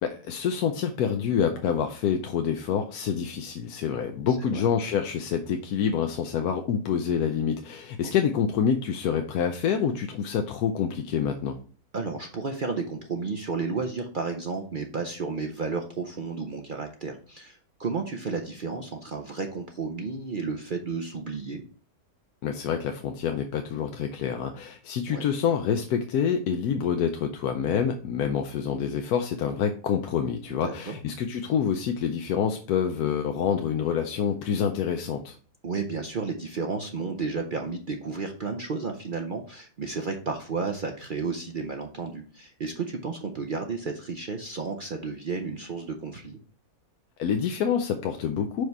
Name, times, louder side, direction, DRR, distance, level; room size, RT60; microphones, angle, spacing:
voice 1, 0.0-11.6 22.4-35.4 47.2-48.7, left 7 dB, 75° left, 6 dB, 1.1 m, -27 dB
voice 2, 4.3-4.6 8.0-8.1 11.9-21.6 25.1-25.2 30.5-31.0 35.6-46.4, right 4 dB, 60° right, 3 dB, 0.5 m, -32 dB
5.4 x 5.0 x 4.5 m, 0.41 s
omnidirectional pair, 1.7 m